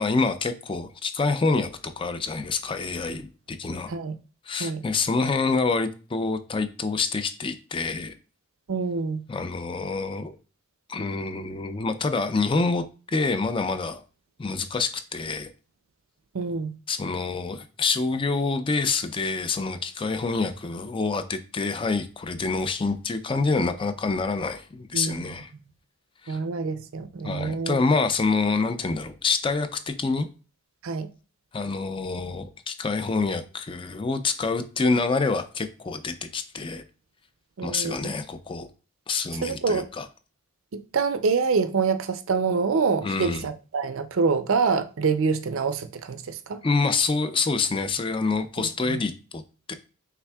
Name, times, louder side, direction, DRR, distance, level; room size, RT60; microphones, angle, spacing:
voice 1, 0.0-3.9 4.5-8.1 9.3-10.4 10.9-14.0 14.4-15.5 16.9-25.5 26.2-26.4 27.2-30.3 31.5-36.8 37.6-38.7 39.1-40.1 43.0-43.5 46.6-49.4 49.7-49.8, left 4 dB, 25° left, 0.4 m, -27 dB
voice 2, 8.7-9.2 16.3-16.7 24.9-25.6 26.3-27.8 30.8-31.1 37.6-38.0 39.4-39.8 40.7-46.6 48.6-49.0, right 5 dB, 60° right, 0.5 m, -26 dB
5.8 x 3.5 x 2.3 m
head